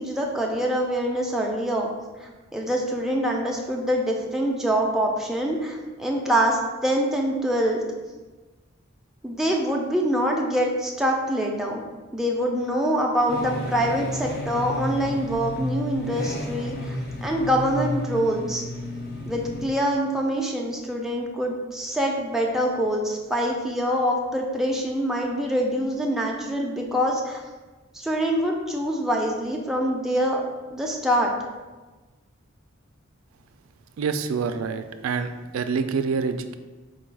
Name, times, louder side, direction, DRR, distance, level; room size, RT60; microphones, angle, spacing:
voice 1, 0.0-1.9 2.2-7.8 9.2-11.8 12.1-18.6 19.3-27.4 27.9-30.4 30.7-31.3, equal, ahead, -1 dB, 0.4 m, -25 dB
sound 1, 13.3-19.7, left 1 dB, 45° left, 0.6 m, -32 dB
voice 2, 34.0-36.6, right 5 dB, 85° right, 9 dB, 0.3 m, -27 dB
4.1 x 2.3 x 4.6 m, 1.2 s
head